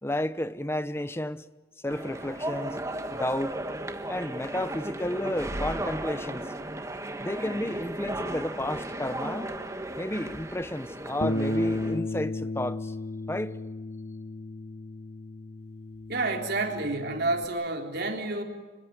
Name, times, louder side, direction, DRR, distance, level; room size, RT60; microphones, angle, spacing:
voice 1, 0.0-1.4 1.8-2.8 3.1-3.5 4.1-6.5 7.2-9.6 10.0-12.9 13.3-13.6, left 1 dB, 10° left, 0.8 m, -32 dB
sound 1, 1.9-12.0, right 1 dB, 15° right, 1.5 m, -35 dB
Bass guitar, 11.2-17.5, left 2 dB, 45° left, 1.6 m, -34 dB
voice 2, 16.1-18.4, right 2 dB, 55° right, 3.8 m, -29 dB
27.0 x 23.0 x 9.2 m
head